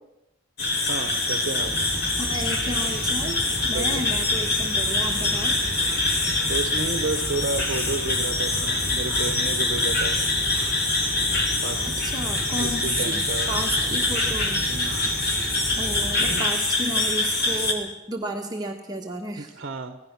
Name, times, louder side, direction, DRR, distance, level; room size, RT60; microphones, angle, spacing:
sound 1, 0.6-17.7, left 2 dB, 50° left, 3.2 m, -25 dB
voice 1, 0.9-1.7 3.6-4.0 5.0-5.1 6.5-10.2 11.6-12.1 12.6-13.5 14.7-15.1 15.5-15.7 16.2-16.5 19.4-20.0, right 3 dB, 50° right, 9 dB, 1.2 m, -32 dB
sound 2, 1.5-16.4, right 1 dB, 5° left, 7.6 m, -35 dB
voice 2, 2.2-3.4 3.7-5.6 12.0-14.7 15.8-19.5, right 1 dB, 20° right, 1 dB, 1.6 m, -32 dB
25.5 x 17.0 x 6.1 m, 0.94 s
head